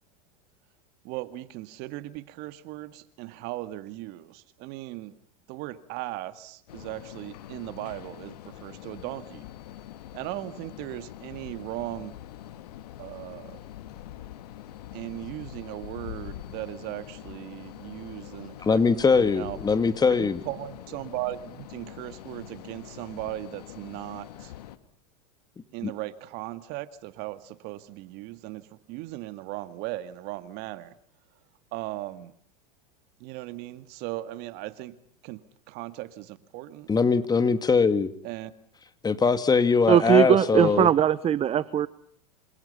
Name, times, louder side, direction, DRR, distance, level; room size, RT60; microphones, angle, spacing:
voice 1, 1.0-5.2 5.5-9.5 10.1-12.1 13.0-13.6 14.9-19.6 20.2-24.5 25.7-31.0 31.7-32.3 33.2-35.0 35.2-35.4 35.7-36.9 38.2-38.5, right 16 dB, 55° right, 12 dB, 2.1 m, -37 dB
sound 1, 6.7-24.8, left 12 dB, 75° left, 2.2 m, -44 dB
voice 2, 18.6-20.4 25.8-25.9 36.9-38.1 39.0-40.9, left 5 dB, 20° left, 11 dB, 2.2 m, -22 dB
voice 3, 39.9-41.9, right 9 dB, 30° right, 17 dB, 1.0 m, -20 dB
28.0 x 27.0 x 5.7 m, 0.63 s
hypercardioid pair, 95°, 20 cm